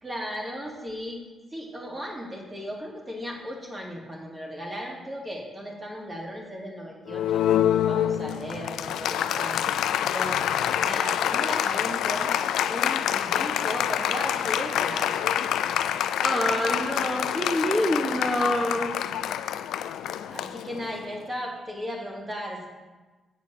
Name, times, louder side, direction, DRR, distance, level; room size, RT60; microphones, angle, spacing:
voice 1, 0.0-1.2 1.5-7.4 7.9-9.6 10.0-10.5 10.8-12.3 12.7-15.1 20.3-22.7, equal, 25° right, -2 dB, 2.3 m, -36 dB
Applause, 7.1-21.2, left 10 dB, 90° left, 0.3 m, -26 dB
voice 2, 16.2-19.0, equal, 5° right, 0 dB, 0.9 m, -26 dB
8.3 x 5.0 x 7.0 m, 1.3 s
cardioid pair, 95°, 0 cm